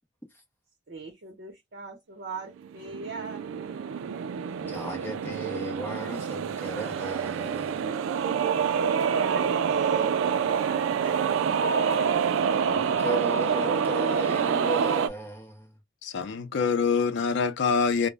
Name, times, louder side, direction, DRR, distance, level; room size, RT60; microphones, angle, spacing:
voice 1, 0.9-3.4 9.1-11.9, right 3 dB, 60° right, 0.7 m, -39 dB
sound 1, 2.6-15.1, right 7 dB, 80° right, 0.3 m, -27 dB
voice 2, 4.6-7.9 12.7-15.8, right 1 dB, 10° left, 0.6 m, -35 dB
voice 3, 16.0-18.1, left 5 dB, 60° left, 0.4 m, -25 dB
2.1 x 2.0 x 3.3 m
head